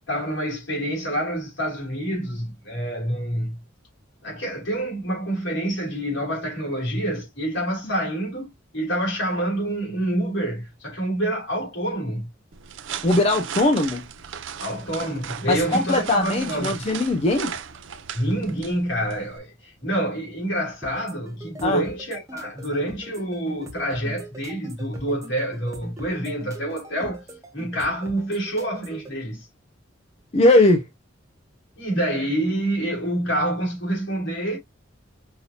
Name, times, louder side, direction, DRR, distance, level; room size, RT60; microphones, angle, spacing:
voice 1, 0.1-3.6 4.2-12.3 14.6-16.8 18.1-27.2 27.5-29.5 31.8-34.6, right 1 dB, 75° left, 2.9 m, -27 dB
sound 1, 12.5-19.4, right 8 dB, 70° right, 0.5 m, -36 dB
voice 2, 13.0-14.0 15.5-17.5 21.6-21.8 30.3-30.8, left 2 dB, 30° left, 0.5 m, -19 dB
sound 2, 20.8-29.1, right 1 dB, 15° right, 1.0 m, -41 dB
5.7 x 2.8 x 2.7 m
head